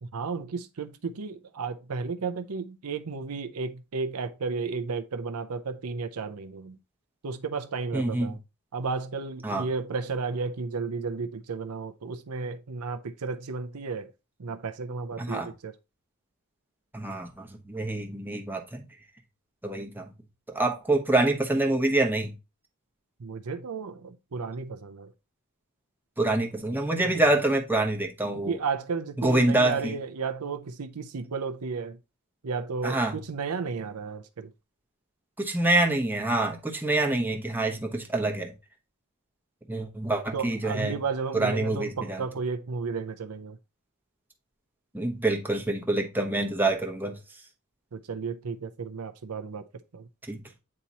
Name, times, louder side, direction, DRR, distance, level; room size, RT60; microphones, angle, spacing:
voice 1, 0.0-6.8 7.2-8.4 8.7-14.1 14.4-15.7 23.2-25.1 27.1-27.2 28.5-32.0 32.4-34.5 40.3-43.6 47.9-49.7 49.9-50.1, right 4 dB, 85° right, 0.6 m, -33 dB
voice 2, 7.9-8.4 9.4-9.7 15.2-15.5 16.9-18.8 19.6-20.1 20.5-22.3 26.2-28.6 29.2-30.0 32.8-33.2 35.4-38.5 39.7-41.0 41.3-42.2 44.9-47.1 50.3-50.4, right 2 dB, 10° right, 1.0 m, -26 dB
8.7 x 2.9 x 4.1 m
head